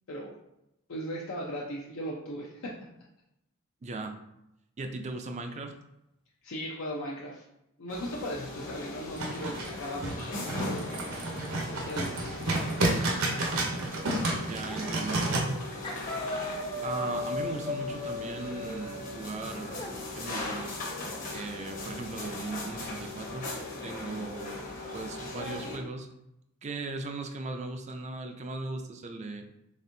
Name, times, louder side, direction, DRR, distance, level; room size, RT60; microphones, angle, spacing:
voice 1, 0.9-2.7 6.4-7.4 7.8-11.0 11.8-12.9, equal, 70° left, -3 dB, 0.5 m, -38 dB
voice 2, 3.8-4.2 4.8-5.8 14.5-15.3 16.8-20.8 21.3-23.4 23.8-24.7 24.9-26.1 26.6-29.4, right 3 dB, 30° right, 5 dB, 0.4 m, -38 dB
sound 1, 7.9-25.8, left 2 dB, 40° left, 0.9 m, -39 dB
sound 2, 9.2-15.4, right 2 dB, 75° right, 0.8 m, -30 dB
sound 3, 14.7-14.9 15.2-15.6 15.8-19.9, left 2 dB, 25° left, 0.5 m, -37 dB
4.2 x 3.4 x 2.6 m, 0.86 s
head